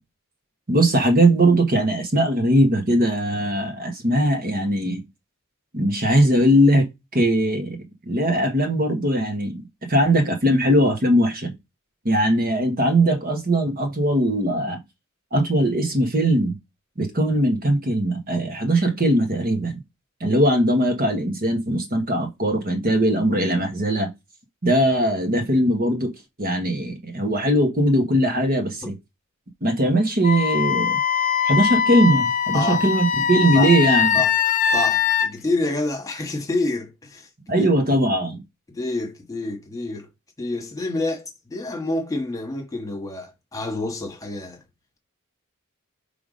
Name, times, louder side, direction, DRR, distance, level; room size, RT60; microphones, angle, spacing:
voice 1, 0.7-5.0 5.7-11.5 12.0-14.8 15.3-16.6 17.0-19.8 20.2-24.1 24.6-26.1 26.4-29.0 29.6-31.0 31.4-34.2 37.5-38.4, right 1 dB, 45° right, 1.4 m, -20 dB
Wind instrument woodwind instrument, 30.2-35.3, left 7 dB, 35° left, 0.5 m, -21 dB
voice 2, 32.5-32.8 33.5-33.7 34.1-34.3 34.7-37.3 37.6-37.7 38.7-40.1 40.4-44.6, left 2 dB, 15° left, 1.5 m, -28 dB
5.8 x 3.5 x 5.2 m
head